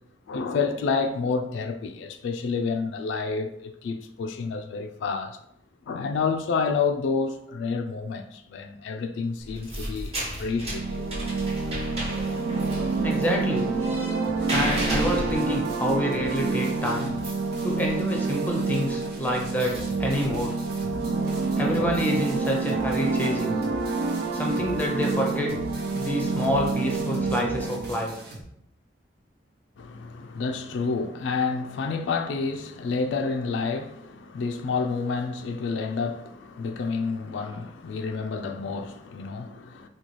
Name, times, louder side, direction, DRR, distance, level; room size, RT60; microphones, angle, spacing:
voice 1, 0.3-5.4 5.9-11.1 29.8-39.9, left 4 dB, 75° left, 0.3 m, -29 dB
sound 1, 9.4-27.5, right 1 dB, 30° right, 1.0 m, -37 dB
sound 2, 10.6-28.0, right 3 dB, 75° right, 0.5 m, -28 dB
voice 2, 13.0-13.7 14.5-17.1 17.6-20.5 21.6-23.6 24.3-25.5 25.9-28.1, equal, 10° left, 0.5 m, -27 dB
sound 3, 14.2-28.4, right 1 dB, 55° right, 0.9 m, -42 dB
3.9 x 2.3 x 3.0 m
head